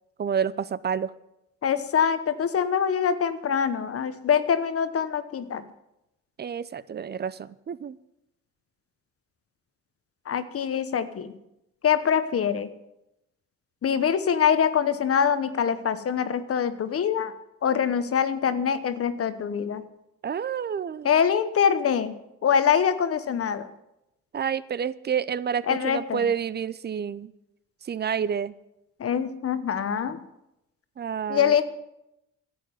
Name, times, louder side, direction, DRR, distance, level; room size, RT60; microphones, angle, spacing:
voice 1, 0.2-1.1 6.4-8.0 20.2-21.1 24.3-27.3 27.9-28.5 31.0-31.6, right 7 dB, 35° right, 18 dB, 0.6 m, -29 dB
voice 2, 1.6-5.6 10.3-11.3 11.8-12.7 13.8-17.3 17.6-19.8 21.0-22.2 22.4-23.7 25.7-26.3 29.0-30.2 31.3-31.6, left 7 dB, 50° left, 12 dB, 1.0 m, -24 dB
11.5 x 7.6 x 9.4 m, 0.88 s
cardioid pair, 90°, 30 cm